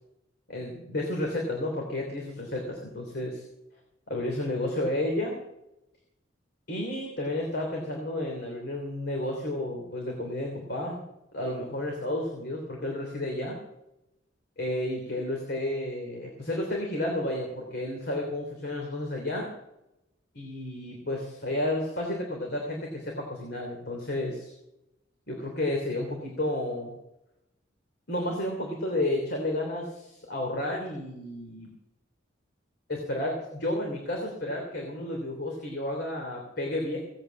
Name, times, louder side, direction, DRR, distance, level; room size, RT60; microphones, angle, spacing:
voice 1, 0.5-3.4 4.1-5.4 6.7-11.0 11.3-13.6 14.6-19.5 20.3-24.5 25.3-26.9 28.1-31.7 32.9-37.0, left 1 dB, 60° left, 0 dB, 3.2 m, -31 dB
17.5 x 8.8 x 7.4 m, 0.89 s
head